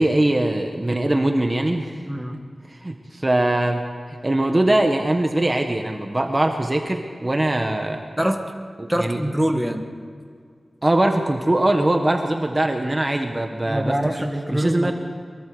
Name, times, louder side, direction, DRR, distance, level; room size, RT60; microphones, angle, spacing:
voice 1, 0.0-2.0 2.7-3.8 4.1-8.0 8.8-9.2 10.8-14.9, right 1 dB, 25° right, 4 dB, 1.5 m, -22 dB
voice 2, 2.1-2.4 8.2-8.5 8.9-9.9 13.7-14.9, equal, 5° right, 4 dB, 1.9 m, -24 dB
23.5 x 22.5 x 5.1 m, 2.1 s
wide cardioid pair, 75°, 0 cm